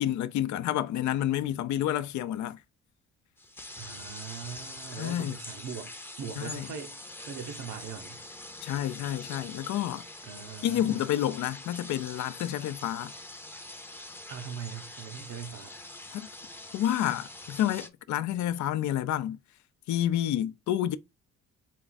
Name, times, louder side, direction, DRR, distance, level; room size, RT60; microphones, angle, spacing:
voice 1, 0.0-2.6 4.9-5.4 6.4-6.7 8.6-10.1 10.6-13.1 16.1-16.3 16.7-19.4 19.9-21.0, left 12 dB, 70° left, 0.5 m, -29 dB
sound 1, 3.4-17.9, left 2 dB, 5° left, 0.6 m, -44 dB
voice 2, 3.8-7.0 7.3-8.2 10.2-11.0 14.3-15.8, right 7 dB, 80° right, 1.0 m, -41 dB
4.5 x 2.5 x 3.9 m
cardioid pair, 90°, 30 cm